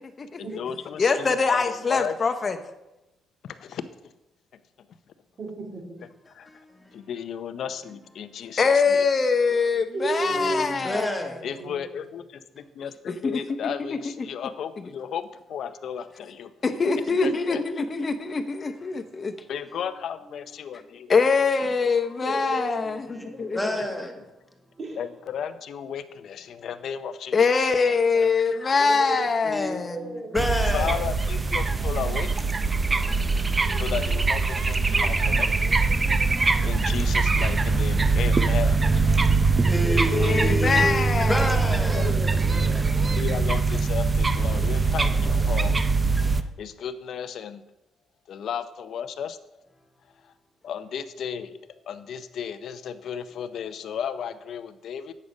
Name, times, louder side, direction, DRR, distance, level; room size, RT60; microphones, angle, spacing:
voice 1, 0.4-2.2 3.4-4.1 6.3-6.5 6.9-9.1 11.4-16.5 17.2-17.6 19.5-21.1 25.0-27.8 30.7-32.4 33.8-35.5 36.6-38.9 41.9-42.2 43.2-45.8 46.4-47.6 48.3-49.4 50.2-50.3 50.6-51.6 51.9-55.1, left 8 dB, 65° left, 0.6 m, -34 dB
voice 2, 1.0-2.6 8.6-11.3 13.1-13.4 13.9-14.0 16.6-19.3 21.1-23.6 27.3-30.2 40.1-41.6, left 4 dB, 40° left, 0.9 m, -23 dB
voice 3, 5.4-6.0 9.9-11.1 11.5-11.8 17.0-17.6 21.6-21.8 22.2-22.7 23.1-23.6 24.8-25.0 28.8-30.3 33.7-34.0 39.8-42.9, right 2 dB, 45° right, 3.5 m, -34 dB
voice 4, 6.5-7.1 10.3-11.4 23.1-24.1 29.4-31.1 39.7-42.2, left 1 dB, 10° left, 1.2 m, -30 dB
sound 1, 30.4-46.4, right 4 dB, 25° right, 0.6 m, -22 dB
8.4 x 6.4 x 5.3 m
cardioid pair, 90°, 0 cm